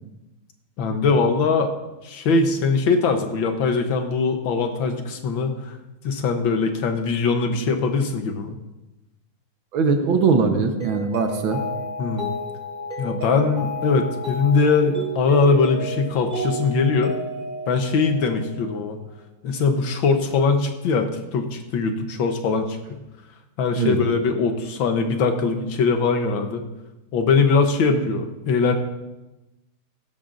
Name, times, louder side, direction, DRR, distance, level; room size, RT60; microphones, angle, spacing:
voice 1, 0.8-1.7 2.0-5.8 6.0-8.5 12.0-12.3 13.0-17.1 17.7-19.0 19.4-23.0 23.6-26.6 27.1-28.7, left 4 dB, 65° left, 6 dB, 1.6 m, -21 dB
voice 2, 9.7-11.6 23.8-24.0 27.9-28.1, right 5 dB, 70° right, 5 dB, 1.8 m, -21 dB
Mallet percussion, 10.8-19.0, equal, 20° right, 1.9 m, -32 dB
16.0 x 12.0 x 2.6 m, 1.0 s
omnidirectional pair, 2.4 m